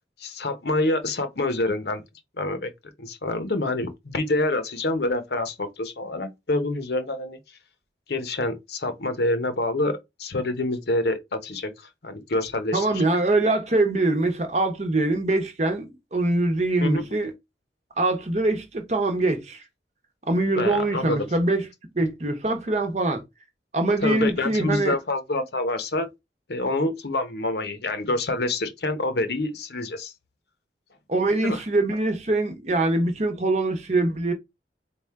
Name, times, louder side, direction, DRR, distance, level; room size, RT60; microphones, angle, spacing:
voice 1, 0.2-2.0 2.4-2.7 3.0-7.4 8.1-11.7 12.0-13.0 16.8-17.0 20.5-21.3 24.0-26.1 26.5-30.1 31.4-31.6, left 2 dB, 65° left, 0.8 m, -27 dB
voice 2, 12.7-17.3 18.0-19.6 20.3-21.7 21.9-23.2 23.7-24.9 31.1-34.3, right 2 dB, 40° right, 0.9 m, -23 dB
3.6 x 2.4 x 4.5 m
head